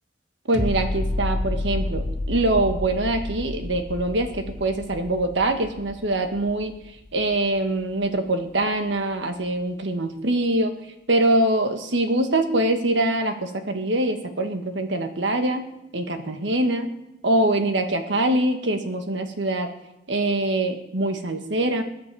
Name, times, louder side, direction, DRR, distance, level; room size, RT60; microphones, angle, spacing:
sound 1, 0.5-7.6 8.0-8.1, left 1 dB, 80° left, 1.8 m, -30 dB
voice 1, 0.5-6.7 7.1-10.7 11.1-15.6 15.9-16.9 17.2-19.7 20.1-21.8, right 1 dB, 80° right, 6 dB, 1.5 m, -23 dB
21.0 x 8.7 x 4.8 m, 0.90 s
head